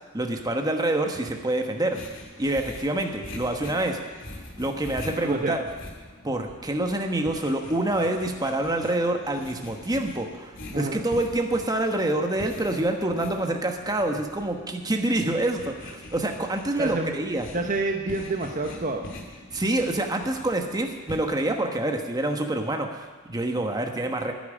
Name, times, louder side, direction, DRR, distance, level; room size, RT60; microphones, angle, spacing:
voice 1, 0.1-2.0 2.4-4.0 4.6-5.6 6.2-17.5 19.5-24.3, right 1 dB, 20° right, 4 dB, 1.1 m, -26 dB
sound 1, 1.9-21.5, left 1 dB, 60° left, 2.2 m, -43 dB
voice 2, 5.2-5.5 10.7-11.0 16.8-17.1 17.5-19.1, right 2 dB, 40° right, 3 dB, 0.9 m, -28 dB
10.5 x 8.6 x 9.8 m, 1.4 s
head